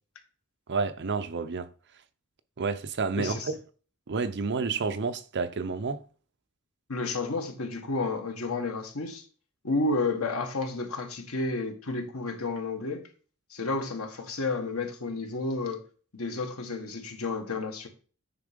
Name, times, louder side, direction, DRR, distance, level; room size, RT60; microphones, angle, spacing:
voice 1, 0.7-1.7 2.6-3.6 4.1-6.0, right 4 dB, 55° right, 0.7 m, -30 dB
voice 2, 3.2-3.5 6.9-9.3 9.6-13.1 13.5-15.8 16.1-17.9, left 3 dB, 75° left, 1.5 m, -31 dB
9.7 x 3.7 x 5.2 m
head